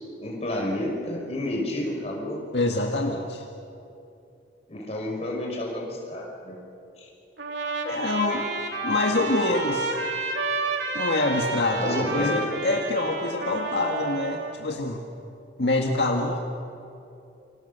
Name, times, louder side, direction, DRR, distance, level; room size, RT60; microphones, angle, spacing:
voice 1, 0.2-2.4 4.7-6.6 7.0-7.1 11.8-12.4, left 1 dB, 35° left, -1 dB, 5.7 m, -30 dB
voice 2, 2.5-3.4 7.8-8.5 8.8-10.0 10.9-15.0 15.6-16.4, left 2 dB, 70° left, 1 dB, 1.8 m, -25 dB
Trumpet, 7.4-14.5, right 3 dB, 80° right, 3.6 m, -30 dB
29.0 x 26.5 x 6.8 m, 2.7 s
head